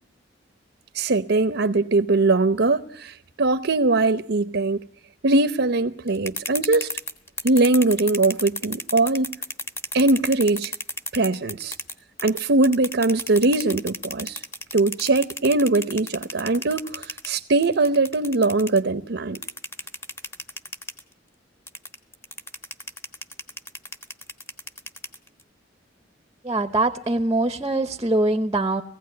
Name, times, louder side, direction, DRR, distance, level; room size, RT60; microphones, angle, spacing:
voice 1, 0.9-4.8 5.2-6.9 7.4-9.4 9.9-10.7 11.1-11.7 12.2-14.4 14.7-19.4, right 2 dB, 65° right, 0.7 m, -21 dB
sound 1, 6.1-11.9 12.2-18.8 19.4-21.0 21.7-25.4, left 1 dB, 15° left, 1.2 m, -32 dB
voice 2, 26.4-28.8, right 2 dB, 20° right, 0.8 m, -23 dB
18.5 x 16.0 x 9.5 m
head